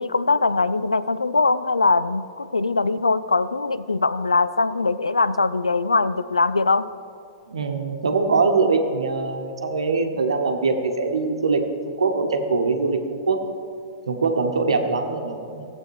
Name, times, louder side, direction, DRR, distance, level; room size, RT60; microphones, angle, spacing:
voice 1, 0.0-6.9, left 3 dB, 85° left, 15 dB, 0.3 m, -21 dB
voice 2, 7.5-13.4 14.1-15.6, right 4 dB, 75° right, 5 dB, 1.0 m, -23 dB
15.0 x 8.1 x 3.1 m, 2.4 s
figure-of-eight pair, 105°, 3 cm